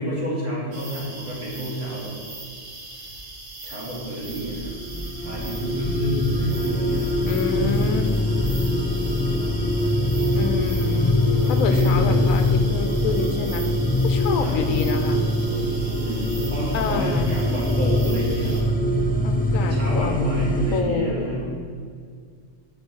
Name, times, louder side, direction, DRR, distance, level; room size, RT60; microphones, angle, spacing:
voice 1, 0.0-2.1 3.6-4.7 5.2-7.1 9.3-10.0 11.4-12.3 14.4-14.7 16.0-18.6 19.6-21.4, right 1 dB, 65° right, -6 dB, 2.4 m, -29 dB
sound 1, 0.7-18.6, right 2 dB, 45° right, 1.1 m, -40 dB
sound 2, 4.2-20.8, left 1 dB, 15° left, 0.3 m, -23 dB
sound 3, 6.5-20.8, left 3 dB, 60° left, 1.1 m, -36 dB
voice 2, 7.2-8.1 8.4-8.7 10.3-11.2 11.5-13.7 14.0-15.2 16.7-17.3 19.2-20.1 20.7-21.7, left 5 dB, 85° left, 7 dB, 1.1 m, -28 dB
5.3 x 5.2 x 6.5 m, 2.1 s
omnidirectional pair, 1.4 m